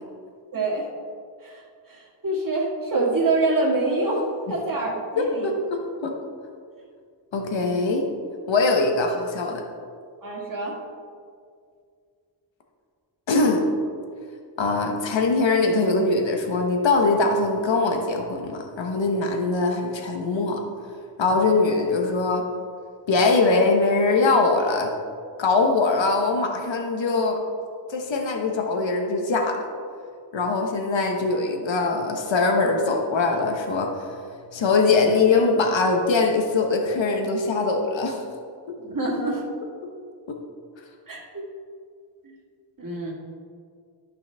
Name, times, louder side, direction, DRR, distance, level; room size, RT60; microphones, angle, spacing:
voice 1, 0.5-0.9 1.4-1.6 1.9-5.5 10.2-10.8 38.8-39.4 41.1-41.4 42.8-43.1, right 2 dB, 45° right, -3 dB, 1.8 m, -25 dB
voice 2, 5.2-6.1 7.3-8.1 8.5-9.6 13.3-13.6 14.6-20.6 21.2-22.4 23.1-24.9 25.4-27.4 27.9-29.6 30.3-34.1 34.5-38.2 40.3-40.4, left 3 dB, 85° left, 2 dB, 0.9 m, -22 dB
12.0 x 5.5 x 3.3 m, 2.2 s
wide cardioid pair, 75°, 44 cm